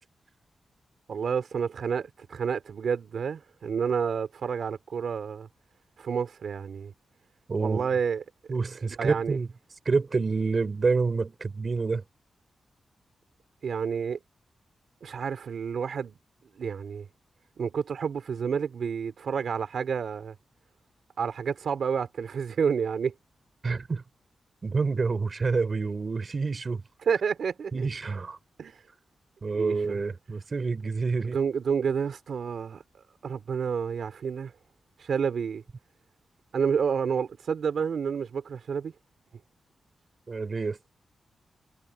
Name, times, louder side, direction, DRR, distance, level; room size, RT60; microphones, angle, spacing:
voice 1, 1.1-5.5 6.0-6.9 7.6-8.2 8.8-9.4 13.6-14.2 15.0-16.2 16.6-17.1 17.6-20.3 21.2-23.1 27.0-27.9 28.6-28.8 29.5-30.0 31.3-32.8 33.2-34.5 35.0-35.6 36.5-38.9, right 6 dB, 70° right, 3.0 m, -29 dB
voice 2, 7.5-7.9 8.5-9.5 9.9-12.0 23.6-24.0 24.6-26.8 27.7-28.4 29.4-31.4 40.3-40.8, right 4 dB, 40° right, 3.8 m, -28 dB
wide cardioid pair, 140°, 0 cm